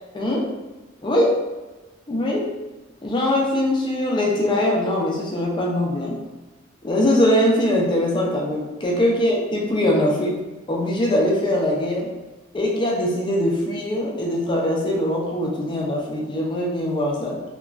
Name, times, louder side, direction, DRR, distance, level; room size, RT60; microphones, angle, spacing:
voice 1, 0.1-0.5 1.0-1.4 2.1-2.5 3.0-6.2 6.8-10.4 10.7-12.1 12.5-17.4, left 1 dB, 25° left, -2 dB, 0.5 m, -22 dB
2.9 x 2.5 x 2.3 m, 1.2 s
head